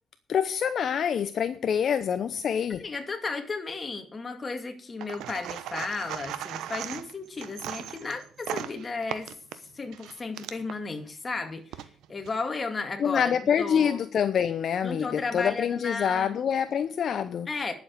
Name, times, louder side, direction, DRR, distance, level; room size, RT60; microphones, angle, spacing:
voice 1, 0.3-2.8 13.0-17.5, left 8 dB, 60° left, 0.7 m, -26 dB
voice 2, 2.8-9.3 9.7-14.0 14.8-16.4 17.5-17.7, left 4 dB, 30° left, 2.3 m, -34 dB
sound 1, 5.0-10.8 11.5-12.3, right 11 dB, 85° right, 0.9 m, -38 dB
10.5 x 7.2 x 8.2 m
cardioid pair, 90°, 0 cm